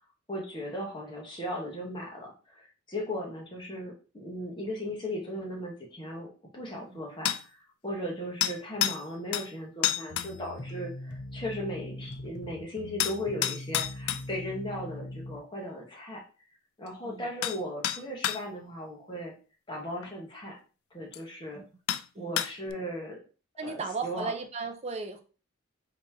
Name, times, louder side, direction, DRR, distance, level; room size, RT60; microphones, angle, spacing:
voice 1, 0.3-7.3 7.8-16.2 16.8-19.3 19.7-20.6 20.9-21.6 22.2-23.2 23.6-24.3, equal, 25° left, -2 dB, 1.1 m, -37 dB
sound 1, 7.2-7.4 8.4-9.0 9.3-9.5 9.8-10.3 13.0-14.2 16.9-17.0 17.4-17.6 17.8-18.4 20.0-20.1 21.1-21.2 21.9-22.0 22.4-22.7, left 12 dB, 85° left, 0.3 m, -29 dB
sound 2, 10.1-15.4, left 1 dB, 50° left, 0.6 m, -41 dB
voice 2, 23.6-25.2, right 4 dB, 30° right, 5 dB, 0.5 m, -36 dB
4.0 x 2.8 x 3.5 m, 0.35 s
head